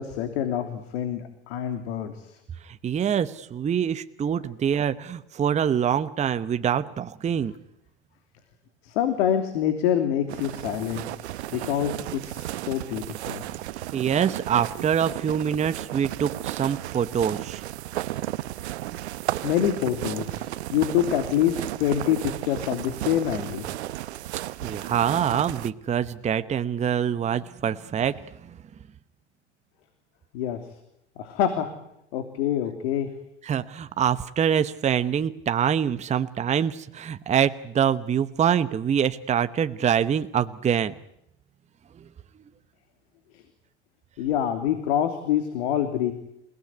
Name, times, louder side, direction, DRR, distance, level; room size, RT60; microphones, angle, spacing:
voice 1, 0.0-2.4 8.8-11.1 11.5-13.4 19.4-23.6 30.3-30.6 31.2-31.7 32.1-33.1 44.2-46.1, left 10 dB, 65° left, 8 dB, 3.0 m, -26 dB
voice 2, 2.6-7.5 13.9-17.6 24.6-28.6 33.4-40.9 42.0-42.1, right 8 dB, 20° right, 11 dB, 1.0 m, -25 dB
sound 1, 10.3-25.7, right 15 dB, 70° right, 1.1 m, -34 dB
28.5 x 18.0 x 9.6 m, 0.81 s
hypercardioid pair, 100°, 34 cm